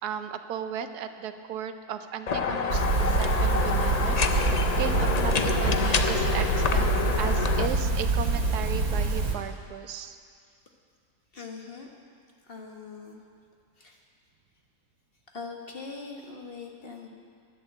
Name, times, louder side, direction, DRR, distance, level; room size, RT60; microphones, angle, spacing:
voice 1, 0.0-10.2, right 8 dB, 80° right, 9 dB, 1.2 m, -36 dB
sound 1, 2.3-7.7, left 5 dB, 85° left, 0.3 m, -27 dB
sound 2, 2.7-9.3, right 3 dB, 65° right, 2.2 m, -26 dB
voice 2, 11.3-11.9 12.5-13.2 13.8-14.0 15.3-17.1, left 4 dB, 40° left, 1 dB, 1.5 m, -41 dB
11.0 x 11.0 x 8.1 m, 2.1 s
omnidirectional pair, 1.7 m